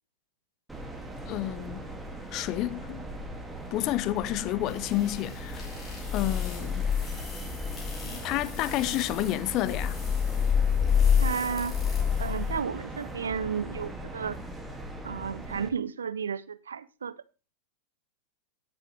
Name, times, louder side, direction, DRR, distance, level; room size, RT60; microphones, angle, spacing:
sound 1, 0.7-15.7, right 1 dB, 5° right, 2.0 m, -40 dB
voice 1, 1.3-1.9 2.3-3.0 3.7-5.7 6.1-6.9 8.0-10.0, left 15 dB, 40° left, 0.6 m, -30 dB
sound 2, 4.7-12.6, left 7 dB, 20° left, 4.9 m, -28 dB
voice 2, 11.2-11.8 12.2-14.4 15.0-17.2, right 6 dB, 70° right, 0.6 m, -32 dB
17.0 x 7.3 x 3.2 m
figure-of-eight pair, 90°, 0 cm